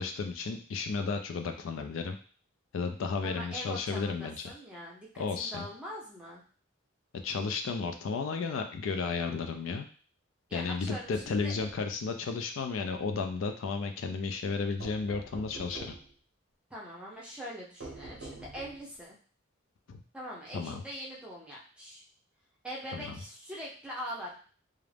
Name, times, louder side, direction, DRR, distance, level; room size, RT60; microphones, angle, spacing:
voice 1, 0.0-2.2 2.7-4.4 5.2-5.6 7.2-9.9 10.5-15.9 19.9-20.0 20.5-20.8 22.9-23.2, left 4 dB, 70° left, 6 dB, 0.3 m, -33 dB
voice 2, 3.2-6.4 10.5-11.5 16.7-19.2 20.1-22.0 22.6-24.3, equal, 5° right, -5 dB, 0.5 m, -42 dB
sound 1, 10.8-11.8 14.8-16.1 17.8-19.0, right 2 dB, 60° right, 0.6 m, -46 dB
2.4 x 2.0 x 3.2 m, 0.41 s
head